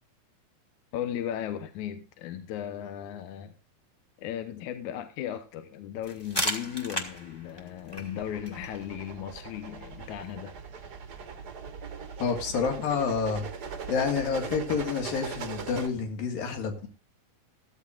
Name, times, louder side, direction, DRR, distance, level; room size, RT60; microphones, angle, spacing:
voice 1, 0.9-3.5 4.2-10.5, left 10 dB, 70° left, 2.2 m, -36 dB
sound 1, 6.0-11.5, equal, 15° left, 0.9 m, -38 dB
sound 2, 8.2-15.9, right 6 dB, 65° right, 0.9 m, -40 dB
voice 2, 12.2-13.5 13.9-16.9, left 6 dB, 90° left, 3.8 m, -28 dB
15.0 x 14.0 x 2.5 m
omnidirectional pair, 4.0 m